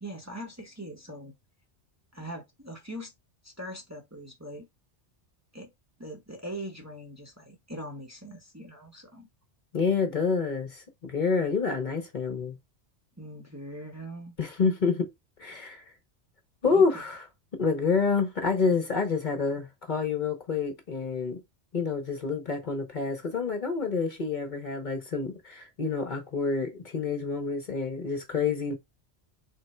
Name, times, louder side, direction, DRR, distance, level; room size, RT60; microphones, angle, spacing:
voice 1, 0.0-1.3 2.1-3.1 3.4-4.7 5.5-5.7 6.0-9.3 13.2-14.4 16.6-16.9, right 1 dB, 15° right, 0.9 m, -41 dB
voice 2, 9.7-12.6 14.4-15.1 15.4-15.8 16.6-17.2 17.5-21.4 21.7-28.7, left 4 dB, 45° left, 1.0 m, -28 dB
3.7 x 3.3 x 4.3 m
omnidirectional pair, 1.2 m